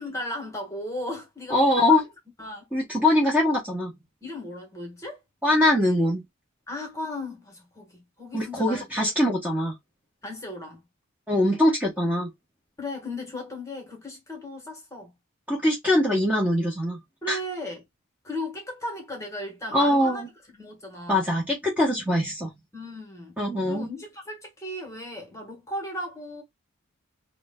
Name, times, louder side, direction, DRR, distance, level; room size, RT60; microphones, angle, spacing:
voice 1, 0.0-2.0 2.4-2.7 4.2-5.2 6.7-9.0 10.2-10.8 12.8-15.1 17.2-17.8 18.2-20.2 20.5-21.3 22.7-23.4 23.7-26.4, left 1 dB, 15° left, 1.0 m, -36 dB
voice 2, 1.5-2.0 2.7-3.9 5.4-6.2 8.3-9.7 11.3-12.3 15.5-17.0 17.3-17.4 19.7-20.3 21.1-22.5 23.4-23.9, left 1 dB, 5° right, 0.8 m, -22 dB
3.0 x 2.1 x 3.5 m
head